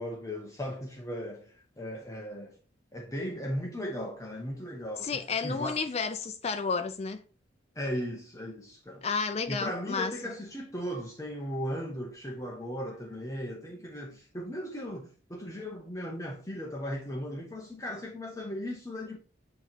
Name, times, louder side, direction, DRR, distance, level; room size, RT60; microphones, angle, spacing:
voice 1, 0.0-2.6 2.9-5.8 7.8-9.1 9.5-19.2, equal, 15° left, 0.8 m, -37 dB
voice 2, 5.0-7.2 9.0-10.1, left 5 dB, 30° left, 0.4 m, -31 dB
9.0 x 3.0 x 4.3 m
head